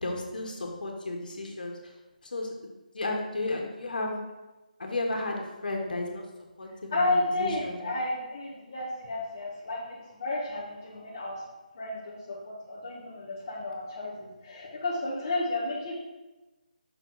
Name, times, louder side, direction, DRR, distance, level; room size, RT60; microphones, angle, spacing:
voice 1, 0.0-1.9 2.3-4.2 4.8-6.2 6.6-7.9, left 2 dB, 70° left, 1 dB, 1.3 m, -33 dB
voice 2, 6.9-11.4 11.7-15.9, left 2 dB, 25° left, -5 dB, 0.8 m, -32 dB
5.9 x 3.8 x 4.7 m, 1.1 s
hypercardioid pair, 175°, 5 cm